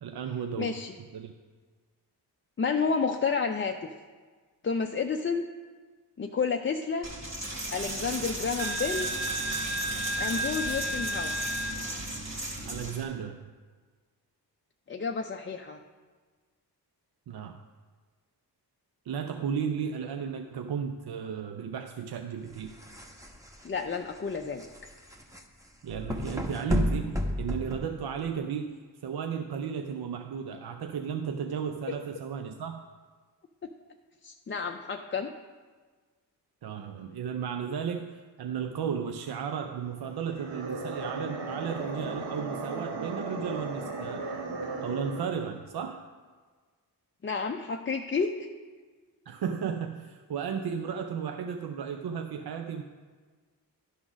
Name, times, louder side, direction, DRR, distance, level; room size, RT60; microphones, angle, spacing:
voice 1, 0.0-0.8 1.1-1.3 12.7-13.5 17.3-17.6 19.1-22.8 25.8-32.8 36.6-44.3 44.8-46.0 49.3-52.8, right 7 dB, 65° right, 7 dB, 0.6 m, -34 dB
voice 2, 0.6-1.0 2.6-3.9 4.6-5.4 6.2-7.1 7.7-9.1 10.2-11.5 14.9-15.8 23.6-24.6 34.2-35.3 47.2-48.3, left 5 dB, 30° left, 4 dB, 0.5 m, -30 dB
Coin (dropping), 7.0-13.0, right 1 dB, 40° right, 1.9 m, -32 dB
sound 1, 22.5-28.4, left 1 dB, 10° right, 1.0 m, -33 dB
sound 2, 40.2-45.5, right 3 dB, 85° right, 1.1 m, -36 dB
11.5 x 3.8 x 6.1 m, 1.5 s
cardioid pair, 60°, 42 cm